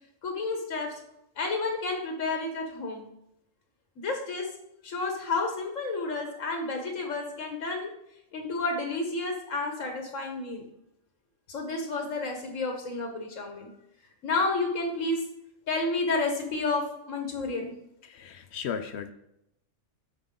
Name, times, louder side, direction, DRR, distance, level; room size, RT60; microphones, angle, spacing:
voice 1, 0.2-1.0 1.4-3.1 4.0-4.5 4.8-7.9 8.3-10.7 11.5-13.7 14.2-15.2 15.7-17.7, left 3 dB, 90° left, 3 dB, 1.6 m, -30 dB
voice 2, 18.0-19.1, left 7 dB, 65° left, 10 dB, 0.8 m, -35 dB
9.2 x 6.7 x 3.7 m, 0.80 s
omnidirectional pair, 1.3 m